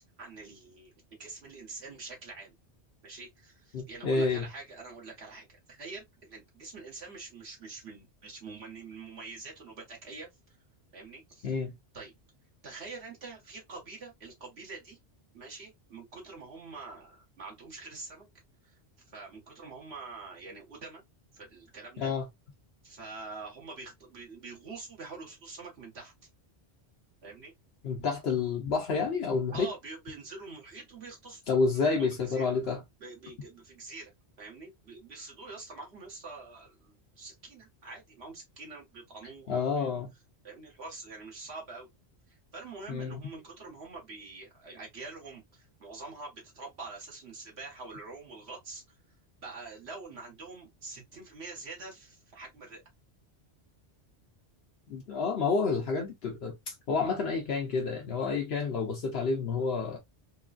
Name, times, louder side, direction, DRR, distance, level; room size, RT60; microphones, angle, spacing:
voice 1, 0.2-0.9 1.2-2.5 3.0-10.3 10.9-11.6 11.9-12.1 12.6-15.0 15.3-18.3 18.6-18.7 19.1-21.0 21.3-22.1 22.8-26.1 27.2-27.5 29.5-31.4 31.9-32.5 33.0-34.1 34.4-39.9 40.4-41.9 42.3-49.0 49.4-52.8, right 3 dB, 70° right, 1.7 m, -45 dB
voice 2, 3.7-4.5 11.4-11.7 22.0-22.3 27.8-29.7 31.5-32.8 39.5-40.1 42.9-43.3 54.9-60.0, left 4 dB, 70° left, 1.0 m, -29 dB
3.7 x 2.3 x 2.4 m
omnidirectional pair, 1.1 m